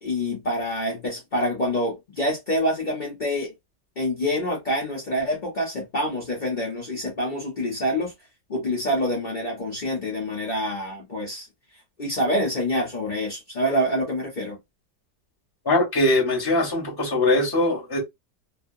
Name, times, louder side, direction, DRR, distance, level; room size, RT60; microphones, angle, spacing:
voice 1, 0.0-3.5 4.0-8.1 8.5-11.5 12.0-14.6, equal, 35° left, 0.8 m, -26 dB
voice 2, 15.6-18.0, left 2 dB, 15° left, 1.0 m, -21 dB
2.7 x 2.5 x 2.6 m
omnidirectional pair, 1.9 m